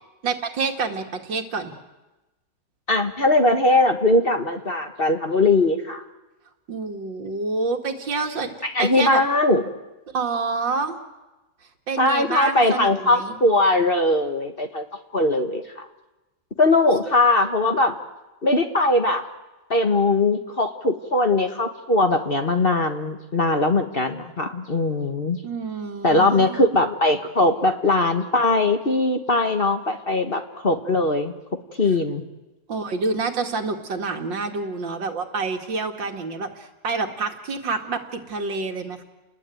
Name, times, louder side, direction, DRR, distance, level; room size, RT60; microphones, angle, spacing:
voice 1, 0.2-1.7 6.7-8.5 8.8-9.2 10.1-10.9 11.9-13.4 25.4-26.7 32.7-39.0, right 4 dB, 80° right, 4 dB, 2.8 m, -27 dB
voice 2, 2.9-6.0 8.6-9.6 12.0-14.8 15.1-15.9 16.6-18.0 18.4-19.2 19.7-25.4 26.0-31.3 31.8-32.2, left 2 dB, 35° left, 6 dB, 1.5 m, -20 dB
30.0 x 20.5 x 9.2 m, 1.1 s
omnidirectional pair, 2.0 m